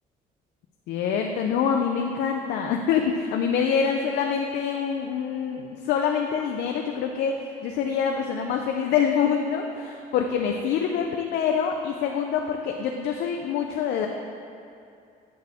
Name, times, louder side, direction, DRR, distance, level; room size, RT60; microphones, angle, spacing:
voice 1, 0.9-14.1, left 7 dB, 75° left, 3 dB, 0.4 m, -25 dB
8.0 x 4.8 x 3.5 m, 2.5 s
cardioid pair, 110°, 17 cm